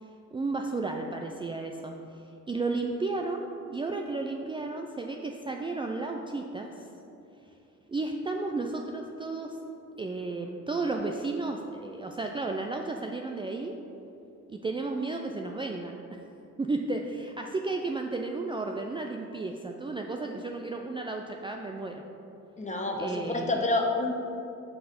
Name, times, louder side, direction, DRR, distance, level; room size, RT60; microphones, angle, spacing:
voice 1, 0.0-6.9 7.9-9.6 10.0-13.7 14.5-16.2 16.6-22.0 23.0-23.6, right 3 dB, 15° right, 2 dB, 0.4 m, -33 dB
voice 2, 22.6-24.1, left 2 dB, 25° left, 2 dB, 1.0 m, -28 dB
6.3 x 4.7 x 5.1 m, 2.9 s
cardioid pair, 90°, 30 cm